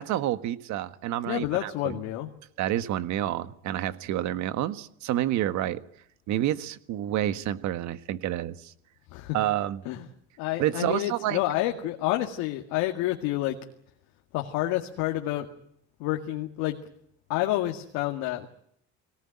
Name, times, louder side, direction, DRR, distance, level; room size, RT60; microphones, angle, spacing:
voice 1, 0.0-2.0 2.6-5.8 6.3-8.7 9.3-9.8 10.6-11.4, right 12 dB, 65° right, 12 dB, 1.6 m, -29 dB
voice 2, 1.3-2.3 9.1-9.4 9.8-10.1 10.4-13.6 14.3-15.5 16.0-16.8 17.3-18.5, left 15 dB, 80° left, 3 dB, 2.1 m, -29 dB
22.5 x 18.5 x 9.9 m, 0.72 s
supercardioid pair, 95°, 31 cm